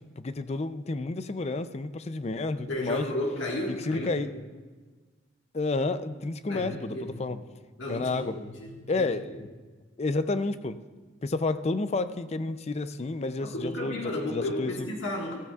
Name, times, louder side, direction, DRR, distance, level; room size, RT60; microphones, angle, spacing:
voice 1, 0.2-3.1 3.9-4.3 5.5-7.4 7.9-8.4 8.9-9.3 10.0-10.8 11.2-14.0 14.3-14.9, left 3 dB, 35° left, 12 dB, 0.4 m, -30 dB
voice 2, 2.7-4.4 6.5-7.4 7.8-9.1 9.3-9.4 13.4-15.4, left 1 dB, 85° left, -1 dB, 1.6 m, -33 dB
15.0 x 14.5 x 2.4 m, 1.4 s
head